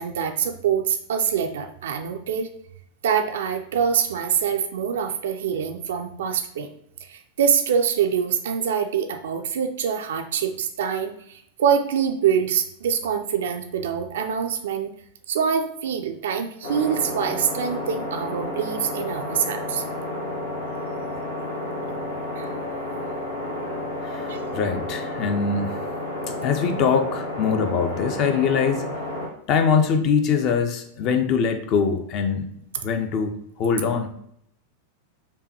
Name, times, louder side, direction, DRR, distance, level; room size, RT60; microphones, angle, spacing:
voice 1, 0.0-2.5 3.0-6.7 7.0-14.9 15.3-19.8 22.4-22.5 24.3-24.4, right 7 dB, 60° right, 5 dB, 0.3 m, -25 dB
sound 1, 16.6-29.3, left 1 dB, 65° left, 0.8 m, -31 dB
voice 2, 24.0-25.8 26.4-28.9 29.5-32.5 32.8-34.1, left 6 dB, 40° left, 7 dB, 0.5 m, -23 dB
5.2 x 2.2 x 2.7 m, 0.71 s
figure-of-eight pair, 90°, 0 cm